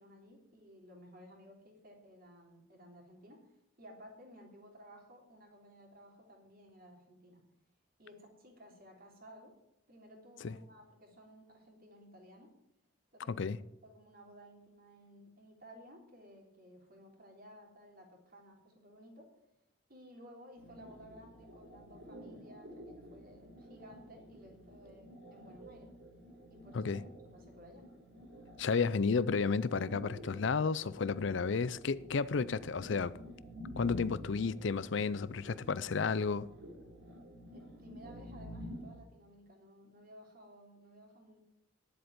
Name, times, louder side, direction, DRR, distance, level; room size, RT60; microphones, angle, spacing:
voice 1, 0.0-7.5 8.0-9.6 9.9-12.5 13.1-13.5 13.8-19.3 19.9-25.9 26.5-26.9 27.2-27.9 37.5-41.4, equal, 45° right, 3.3 m, -56 dB
sound 1, 20.6-39.0, equal, 65° right, 3.5 m, -50 dB
voice 2, 28.6-33.1 33.8-36.5, left 5 dB, 65° left, 0.5 m, -32 dB
10.5 x 7.9 x 9.5 m
head